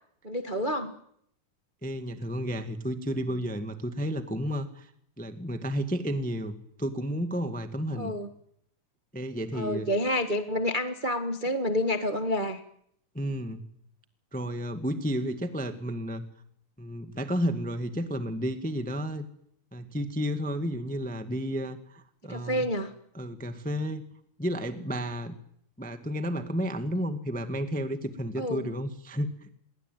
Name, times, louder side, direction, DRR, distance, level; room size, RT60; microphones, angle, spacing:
voice 1, 0.2-0.9 8.0-8.3 9.5-12.6 22.3-22.9 28.4-28.7, left 1 dB, 45° right, 7 dB, 0.6 m, -29 dB
voice 2, 1.8-4.9 5.2-8.1 9.1-9.9 13.1-13.6 14.3-16.2 16.8-19.2 19.7-22.7 23.1-24.1 24.4-25.4 25.8-29.5, equal, 5° left, 8 dB, 0.6 m, -32 dB
28.0 x 22.5 x 9.3 m, 0.70 s
omnidirectional pair, 4.0 m